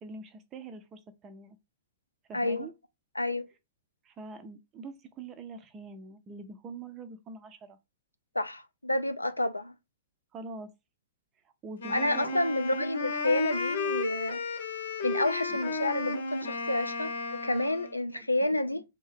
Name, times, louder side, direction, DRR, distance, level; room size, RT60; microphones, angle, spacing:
voice 1, 0.0-1.6 2.3-2.7 4.0-7.8 10.3-10.7 11.6-12.4 12.7-12.8 15.5-15.6 18.1-18.3 18.7-18.8, right 4 dB, 25° right, 0.6 m, -44 dB
voice 2, 2.3-2.7 3.2-3.5 8.3-9.7 11.9-14.4 15.0-17.1 17.4-18.8, left 1 dB, 85° left, 0.4 m, -29 dB
Wind instrument woodwind instrument, 11.8-18.0, left 3 dB, 65° left, 0.8 m, -34 dB
3.5 x 2.7 x 3.4 m
figure-of-eight pair, 105°, 0 cm